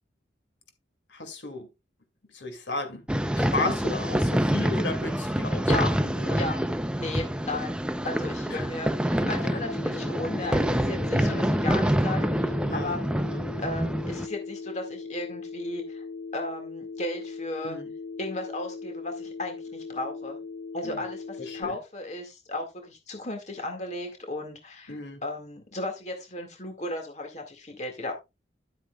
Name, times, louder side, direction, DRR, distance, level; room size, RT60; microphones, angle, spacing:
voice 1, 1.1-1.7 2.3-3.0 3.3-6.4 8.5-8.7 9.4-9.6 11.1-11.5 12.6-13.0 13.3-13.4 17.6-17.9 20.8-21.1 21.4-21.8 24.9-25.2, left 2 dB, 75° left, 2.4 m, -34 dB
sound 1, 3.1-14.3, equal, 5° right, 0.6 m, -26 dB
voice 2, 7.0-7.8 8.0-13.0 13.6-16.0 16.3-17.8 18.2-20.4 20.7-28.1, left 2 dB, 35° left, 2.0 m, -35 dB
Telephone, 9.4-21.6, left 4 dB, 90° left, 1.0 m, -39 dB
12.0 x 8.4 x 2.3 m
head